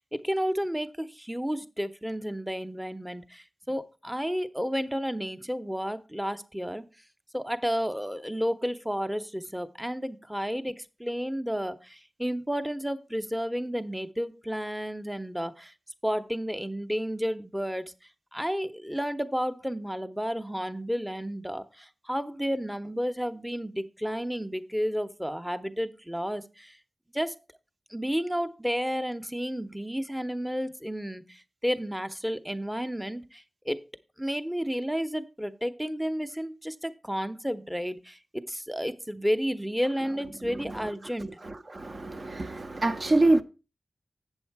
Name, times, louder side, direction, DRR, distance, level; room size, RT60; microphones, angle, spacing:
voice 1, 0.1-6.8 7.3-15.7 16.0-17.9 18.3-26.8 27.1-27.4 27.9-33.8 34.2-41.3, equal, 5° right, 0.7 m, -31 dB
voice 2, 41.7-43.4, right 2 dB, 50° right, 0.7 m, -24 dB
8.0 x 7.2 x 4.6 m
wide cardioid pair, 60°, 0 cm